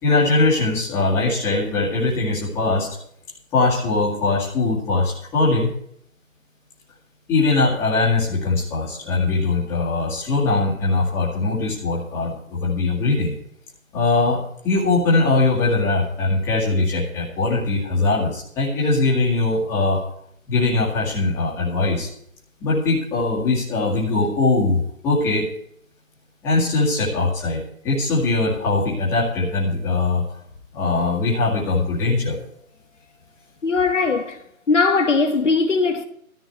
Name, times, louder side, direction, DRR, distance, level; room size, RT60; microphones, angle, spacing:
voice 1, 0.0-2.9 3.5-5.7 7.3-13.3 13.9-20.0 20.5-22.1 22.6-25.5 26.4-30.2 30.7-32.4, left 3 dB, 5° left, 2.1 m, -21 dB
voice 2, 33.6-34.4 34.7-36.1, left 4 dB, 60° left, 1.3 m, -19 dB
13.5 x 11.5 x 4.6 m
figure-of-eight pair, 160°, 42 cm